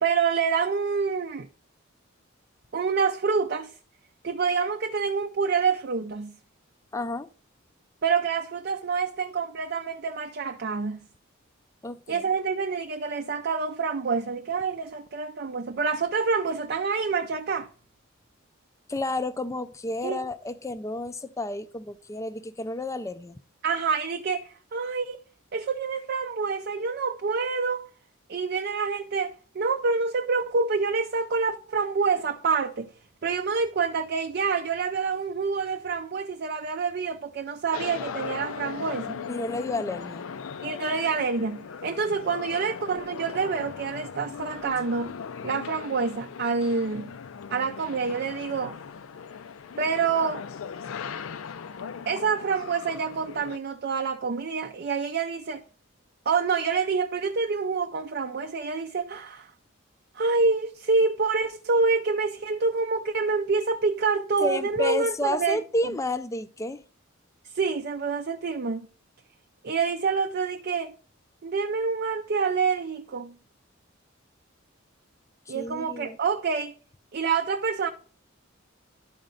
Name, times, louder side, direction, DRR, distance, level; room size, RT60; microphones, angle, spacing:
voice 1, 0.0-1.5 2.7-3.7 4.2-6.3 8.0-11.0 12.1-17.7 20.0-20.2 23.6-25.2 25.5-27.9 28.3-32.9 33.2-39.2 40.6-45.1 45.4-47.1 47.5-48.8 49.8-50.4 52.1-55.6 56.3-59.5 60.1-65.6 67.5-68.9 69.6-71.0 71.4-73.3 75.5-76.7 77.1-77.9, right 5 dB, 50° right, 0.4 m, -27 dB
voice 2, 6.9-7.3 11.8-12.2 18.9-23.4 39.3-40.3 64.4-66.8 75.5-76.2, left 2 dB, 15° left, 0.4 m, -31 dB
sound 1, 37.7-53.6, left 6 dB, 75° left, 0.5 m, -38 dB
11.5 x 4.3 x 3.9 m
head